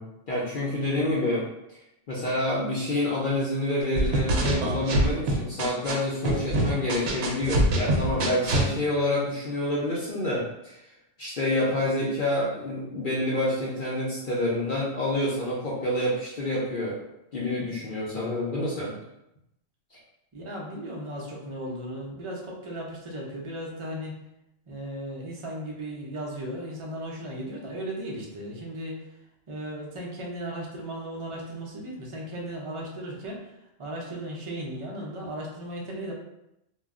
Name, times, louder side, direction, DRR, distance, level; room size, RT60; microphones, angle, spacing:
voice 1, 0.0-1.5 2.1-10.8 11.2-17.0 17.3-18.9, left 1 dB, 55° left, -6 dB, 0.6 m, -28 dB
sound 1, 4.0-5.9 6.2-8.7, right 1 dB, 65° right, 0.8 m, -24 dB
voice 2, 20.3-24.1 24.7-29.2 29.5-36.1, right 1 dB, 50° right, -2 dB, 0.4 m, -36 dB
2.2 x 2.1 x 3.5 m, 0.84 s
omnidirectional pair, 1.3 m